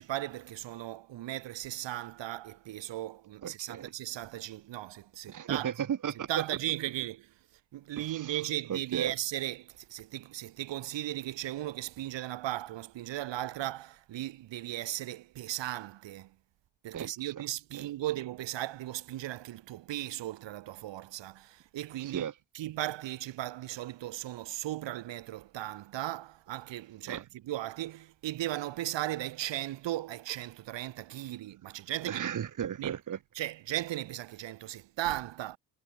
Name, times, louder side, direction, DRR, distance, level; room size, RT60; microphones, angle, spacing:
voice 1, 0.0-5.7 6.3-7.3 7.7-16.3 16.8-22.3 22.6-32.2 32.8-32.9 33.4-35.6, right 14 dB, 85° right, 3.5 m, -37 dB
voice 2, 3.4-3.9 5.3-6.3 8.0-8.4 8.7-9.2 16.9-17.3 17.7-17.9 22.0-22.4 27.1-27.2 32.0-33.2, right 9 dB, 45° right, 2.0 m, -35 dB
cardioid pair, 120°, 43 cm